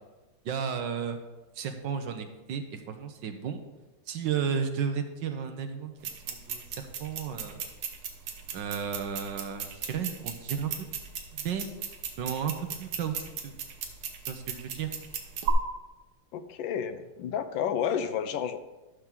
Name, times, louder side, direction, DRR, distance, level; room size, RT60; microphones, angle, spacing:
voice 1, 0.4-1.2 1.6-3.6 4.1-5.9 6.2-7.6 8.5-11.0 11.3-11.7 12.2-13.5 14.3-14.9, right 7 dB, 65° right, 7 dB, 1.4 m, -33 dB
sound 1, 6.0-15.5, right 8 dB, 80° right, 1.9 m, -37 dB
voice 2, 16.3-18.6, left 8 dB, 70° left, 11 dB, 1.2 m, -31 dB
13.5 x 6.1 x 3.7 m, 1.1 s
omnidirectional pair, 2.3 m